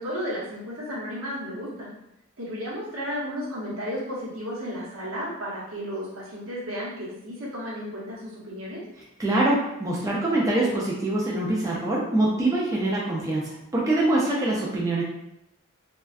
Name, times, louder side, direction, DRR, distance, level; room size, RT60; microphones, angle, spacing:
voice 1, 0.0-1.9 2.4-8.8, equal, 75° right, -6 dB, 0.9 m, -33 dB
voice 2, 9.0-15.0, right 2 dB, 15° right, -5 dB, 0.3 m, -24 dB
2.4 x 2.3 x 2.3 m, 0.86 s
head